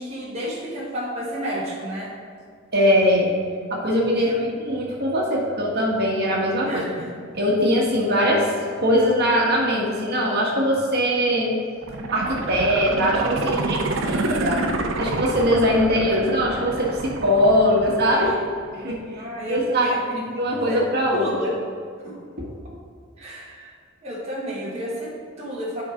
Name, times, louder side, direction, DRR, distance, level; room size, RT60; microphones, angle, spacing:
voice 1, 0.0-2.1 4.1-4.5 6.6-7.1 13.4-14.2 18.1-18.5 18.7-18.9 19.1-20.2 20.7-20.8 21.1-21.6 22.0-22.1 23.2-23.7 24.0-25.8, equal, 30° right, -6 dB, 1.3 m, -32 dB
voice 2, 2.7-3.3 3.7-6.9 7.3-8.5 8.8-11.6 12.1-18.3 18.8-21.3, equal, 55° right, -3 dB, 1.6 m, -21 dB
sound 1, 11.8-18.8 19.2-19.3, right 2 dB, 75° right, 0.7 m, -27 dB
11.0 x 4.8 x 3.8 m, 2.2 s
head